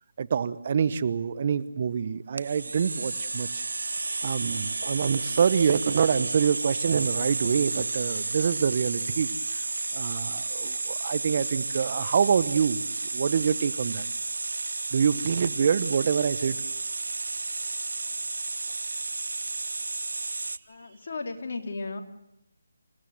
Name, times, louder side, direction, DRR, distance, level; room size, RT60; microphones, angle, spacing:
voice 1, 0.2-3.6 4.2-9.3 9.9-12.8 13.1-14.1 14.9-16.6, right 7 dB, 40° right, 16 dB, 1.1 m, -26 dB
sound 1, 2.4-20.6, right 3 dB, 70° right, 0.9 m, -32 dB
voice 2, 20.7-22.0, left 3 dB, 50° left, 4 dB, 3.4 m, -35 dB
28.0 x 17.0 x 7.9 m, 0.85 s
figure-of-eight pair, 155°, 0 cm